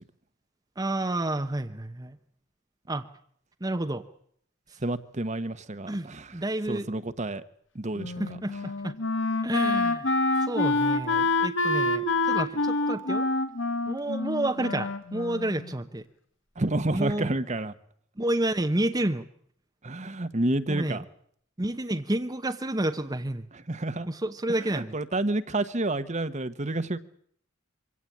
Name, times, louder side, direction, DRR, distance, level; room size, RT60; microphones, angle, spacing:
voice 1, 0.8-2.2 2.9-3.1 3.6-4.0 5.9-6.9 8.2-8.9 9.4-10.1 10.4-13.3 13.9-16.0 16.9-17.3 18.2-19.3 20.7-21.0 21.6-23.5 24.1-25.0, right 1 dB, 20° right, 6 dB, 1.0 m, -30 dB
voice 2, 4.8-6.3 6.7-7.4 7.7-8.4 16.6-17.7 19.8-21.0 23.5-24.1 24.7-27.0, right 2 dB, 40° right, 11 dB, 1.2 m, -29 dB
Wind instrument woodwind instrument, 8.0-15.8, left 2 dB, 75° left, 1.9 m, -27 dB
24.5 x 17.0 x 8.6 m, 0.65 s
head